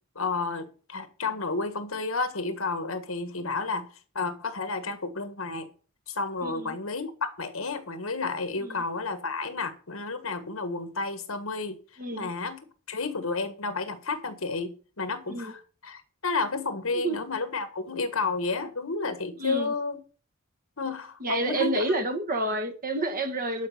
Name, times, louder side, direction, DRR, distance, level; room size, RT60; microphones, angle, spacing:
voice 1, 0.1-3.9 4.1-5.7 6.1-11.8 12.1-12.6 12.9-20.0 20.8-21.8, left 3 dB, 70° left, 1.6 m, -31 dB
voice 2, 6.4-6.8 8.6-8.8 12.0-12.3 15.3-15.5 16.9-17.2 19.4-19.7 21.2-23.7, right 1 dB, 40° right, 1.8 m, -29 dB
11.5 x 5.2 x 7.1 m
head